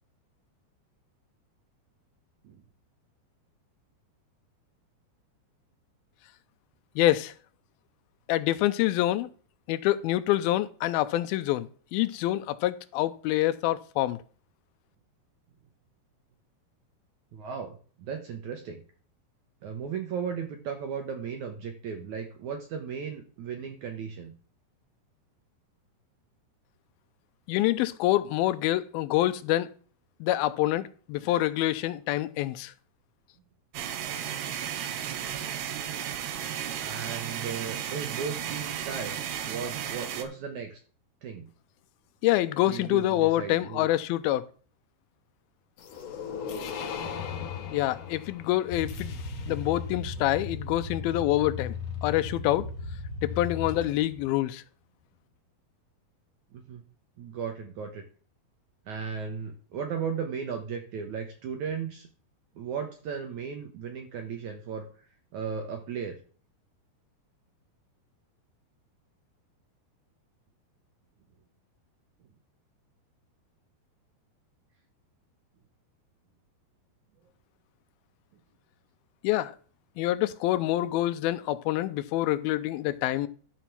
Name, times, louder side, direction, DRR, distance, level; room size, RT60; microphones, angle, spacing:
voice 1, 7.0-7.3 8.3-9.3 9.7-14.2 27.5-29.7 30.2-32.7 42.2-44.4 47.7-49.2 49.5-51.7 52.0-52.7 53.2-54.6 79.2-79.5 80.0-83.3, left 15 dB, 80° left, 2.3 m, -26 dB
voice 2, 17.3-18.8 19.6-24.3 36.8-39.2 39.5-40.8 41.2-41.5 42.6-43.9 56.5-56.8 57.2-58.0 58.9-62.1 62.6-64.9 65.3-66.2, right 6 dB, 70° right, 1.9 m, -36 dB
sound 1, 33.7-40.2, right 9 dB, 85° right, 3.1 m, -34 dB
sound 2, 45.8-49.8, left 7 dB, 60° left, 2.7 m, -38 dB
sound 3, 48.7-54.3, left 4 dB, 40° left, 3.5 m, -36 dB
13.5 x 5.0 x 5.9 m
omnidirectional pair, 4.7 m